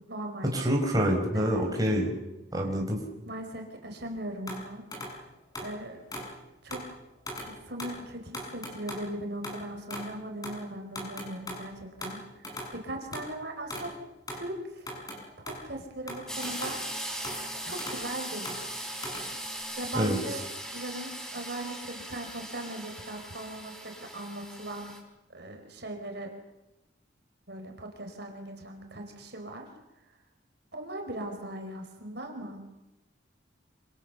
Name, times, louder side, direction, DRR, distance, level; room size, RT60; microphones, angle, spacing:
voice 1, 0.0-0.5 1.3-2.2 3.3-4.9 5.6-6.0 6.6-6.8 7.5-13.9 14.3-14.9 15.4-16.8 17.6-18.5 19.8-20.4 20.7-24.9 25.3-26.3 27.5-29.7 30.7-32.6, right 1 dB, 55° right, 4 dB, 4.8 m, -39 dB
voice 2, 0.5-2.1 2.5-3.0 19.9-20.2, equal, 20° right, 0 dB, 5.3 m, -26 dB
sound 1, 4.0-4.1 4.5-5.2 5.5-6.3 6.7-6.9 7.3-7.5 7.8-8.0 8.3-10.1 10.4-10.6 10.9-12.8 13.1-14.5 14.8-15.7 16.1-17.0 17.2-18.1 18.4-19.6, left 1 dB, 20° left, 7.8 m, -40 dB
sound 2, 16.3-25.0, right 1 dB, 5° left, 4.8 m, -39 dB
28.0 x 27.0 x 7.1 m, 0.94 s
head